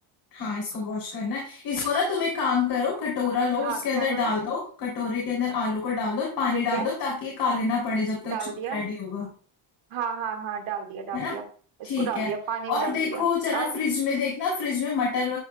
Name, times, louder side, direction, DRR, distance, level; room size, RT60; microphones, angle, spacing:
voice 1, 0.3-8.4 8.7-9.3 11.1-11.4 11.8-12.3 12.7-15.4, left 5 dB, 55° left, -4 dB, 3.5 m, -27 dB
voice 2, 3.6-4.3 6.5-6.9 8.2-8.9 9.9-11.4 11.8-13.3 13.5-13.8, right 7 dB, 75° right, 2 dB, 2.1 m, -32 dB
13.0 x 8.1 x 2.4 m, 0.43 s
cardioid pair, 175°, 49 cm